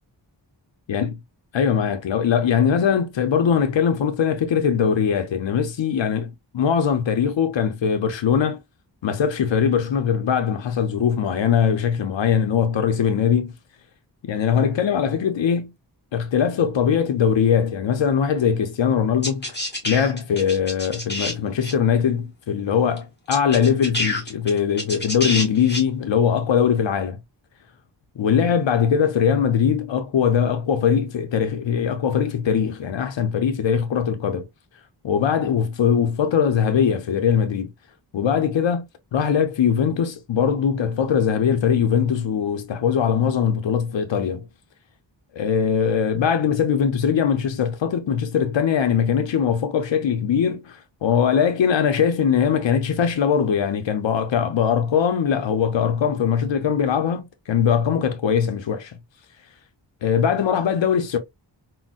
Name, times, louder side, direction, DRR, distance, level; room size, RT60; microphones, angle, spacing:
voice 1, 1.5-8.6 9.0-13.5 14.2-15.7 16.1-19.4 19.8-27.2 28.2-34.5 35.0-37.7 38.1-44.4 45.3-58.9 60.0-61.2, left 7 dB, 80° left, 0.6 m, -21 dB
sound 1, 19.2-21.3 21.6-21.7 23.0-23.1 23.3-25.8, left 1 dB, 25° left, 1.6 m, -27 dB
3.9 x 2.0 x 2.4 m
wide cardioid pair, 60°, 44 cm